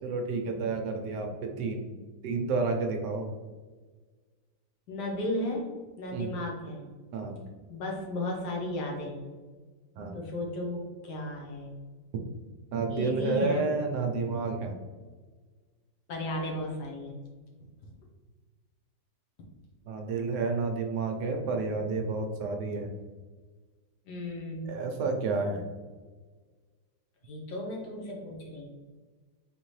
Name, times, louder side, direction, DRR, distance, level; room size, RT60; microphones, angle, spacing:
voice 1, 0.0-1.9 2.2-3.3 6.1-6.3 7.1-7.4 10.0-10.2 12.7-14.7 19.9-22.9 24.6-25.7, right 4 dB, 75° right, 3 dB, 1.1 m, -30 dB
voice 2, 4.9-5.7 6.0-6.8 7.7-9.3 10.1-11.7 12.9-13.7 16.1-17.1 24.1-24.6 27.2-28.6, left 1 dB, 65° left, 0 dB, 1.4 m, -34 dB
4.0 x 3.6 x 3.1 m, 1.4 s
omnidirectional pair, 2.0 m